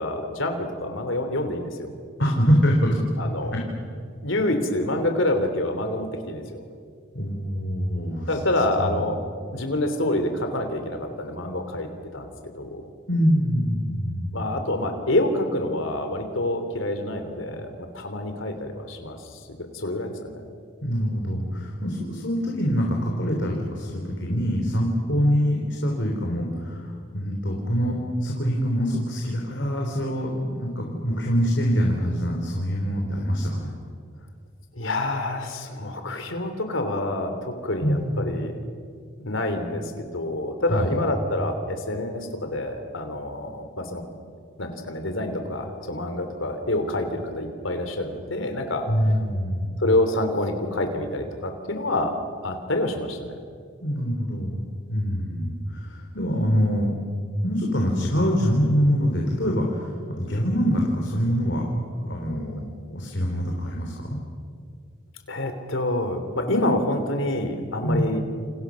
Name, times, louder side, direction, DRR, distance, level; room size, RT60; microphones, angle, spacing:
voice 1, 0.0-1.9 3.2-3.5 4.2-6.6 8.3-9.2 9.5-12.8 14.3-19.2 19.7-20.4 34.7-38.5 39.2-44.0 44.6-48.8 49.8-52.1 52.4-53.4 65.3-68.2, left 1 dB, 85° left, 6 dB, 3.3 m, -27 dB
voice 2, 2.2-3.0 3.5-3.6 7.1-8.4 8.8-9.0 13.1-14.5 20.8-33.7 37.8-38.4 40.7-41.0 48.9-49.8 53.8-54.6 54.9-56.9 57.4-61.7 62.0-62.6 62.9-64.2 67.8-68.1, equal, 65° left, 0 dB, 3.7 m, -24 dB
29.5 x 28.5 x 6.4 m, 2.2 s
head